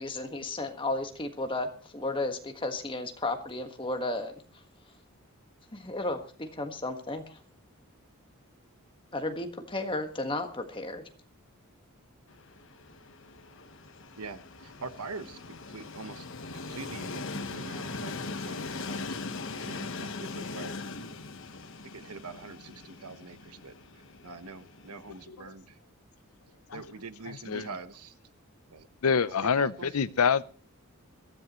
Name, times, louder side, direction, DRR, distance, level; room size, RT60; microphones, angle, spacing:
voice 1, 0.0-4.4 5.7-7.4 9.1-11.0, left 2 dB, 20° left, 1.5 m, -33 dB
Train, 12.3-25.3, left 3 dB, 60° left, 1.2 m, -40 dB
voice 2, 14.2-15.4 15.7-16.3 16.5-19.2 19.5-20.8 21.9-25.8 26.7-28.2 28.7-30.0, right 4 dB, 85° right, 1.2 m, -44 dB
voice 3, 29.0-30.4, left 6 dB, 75° left, 0.6 m, -25 dB
22.0 x 13.5 x 3.1 m
head